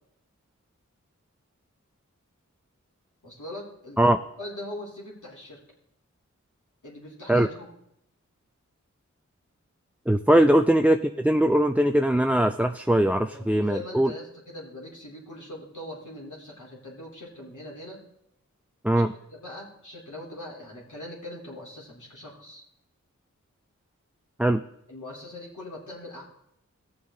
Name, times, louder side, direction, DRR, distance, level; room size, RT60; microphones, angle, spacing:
voice 1, 3.2-5.6 6.8-7.7 10.3-10.4 13.3-18.0 18.9-19.0 19.3-22.6 24.9-26.2, left 1 dB, 70° left, -4 dB, 3.5 m, -41 dB
voice 2, 10.1-14.1 18.8-19.1 24.4-24.6, right 1 dB, 5° right, 8 dB, 0.4 m, -21 dB
16.5 x 7.0 x 3.8 m, 0.79 s
wide cardioid pair, 40°, 31 cm